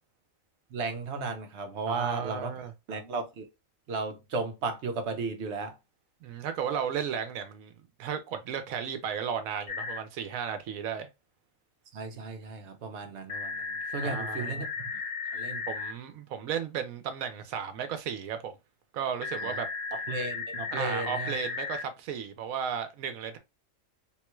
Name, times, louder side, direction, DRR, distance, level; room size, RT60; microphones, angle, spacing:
voice 1, 0.7-2.5 2.9-3.4 3.9-5.7 11.9-14.9 15.3-15.6 19.4-19.6 20.1-21.4, right 4 dB, 60° right, 1.0 m, -34 dB
voice 2, 1.9-2.7 6.2-7.7 8.0-11.1 14.0-14.7 15.7-18.5 18.9-19.7 20.7-23.4, right 7 dB, 85° right, 1.1 m, -34 dB
sound 1, 9.7-10.0 13.3-15.9 19.2-21.8, left 4 dB, 55° left, 0.5 m, -35 dB
3.6 x 2.3 x 3.0 m
omnidirectional pair, 1.4 m